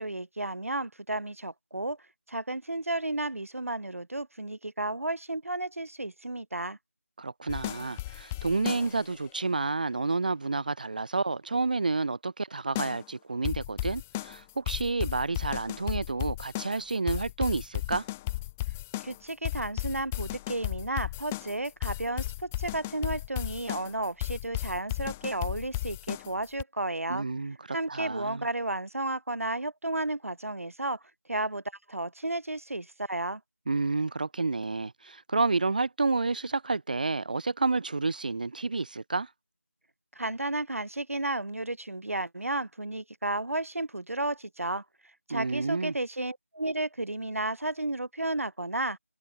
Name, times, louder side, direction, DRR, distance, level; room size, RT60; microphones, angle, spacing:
voice 1, 0.0-2.0 2.3-6.8 19.0-27.3 27.7-31.0 31.3-31.6 31.9-33.4 40.1-44.8 45.3-49.0, right 2 dB, 65° right, 5.1 m, -33 dB
voice 2, 7.2-18.0 27.1-27.6 27.9-28.4 33.7-39.3 45.3-45.9, right 3 dB, 35° right, 4.5 m, -30 dB
sound 1, 7.5-9.2 12.7-13.0 13.4-26.6, left 17 dB, 5° left, 2.0 m, -35 dB
figure-of-eight pair, 175°, 8 cm